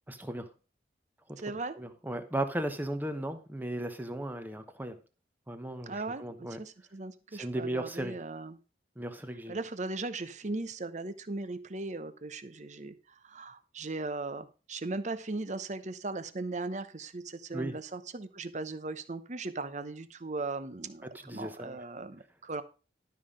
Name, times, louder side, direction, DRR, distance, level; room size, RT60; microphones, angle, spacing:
voice 1, 0.1-0.5 1.8-5.0 5.5-6.6 7.3-8.1 9.0-9.6 17.5-17.7 21.2-21.8, right 1 dB, 10° right, 1.1 m, -36 dB
voice 2, 1.4-1.8 5.9-8.6 9.5-12.9 13.2-22.6, right 3 dB, 40° right, 0.9 m, -38 dB
12.0 x 5.7 x 5.1 m
head